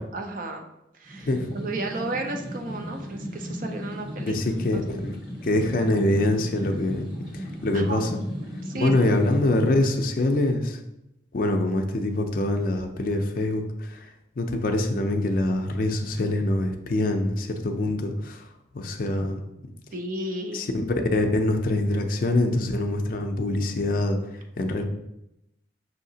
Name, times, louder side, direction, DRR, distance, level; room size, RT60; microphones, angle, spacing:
voice 1, 0.1-0.7 0.9-4.3 4.7-4.8 7.7-8.1 8.6-8.9 19.9-20.6, right 2 dB, 45° right, 4 dB, 0.5 m, -33 dB
sound 1, 1.0-9.4, equal, 80° right, 1.4 m, -36 dB
voice 2, 4.2-5.1 5.4-7.0 7.3-8.2 8.7-10.8 11.3-14.1 14.4-18.4 18.7-19.4 20.5-20.7 21.1-24.2 24.6-24.8, left 1 dB, 50° left, 4 dB, 0.4 m, -24 dB
5.6 x 2.8 x 2.7 m, 0.85 s
head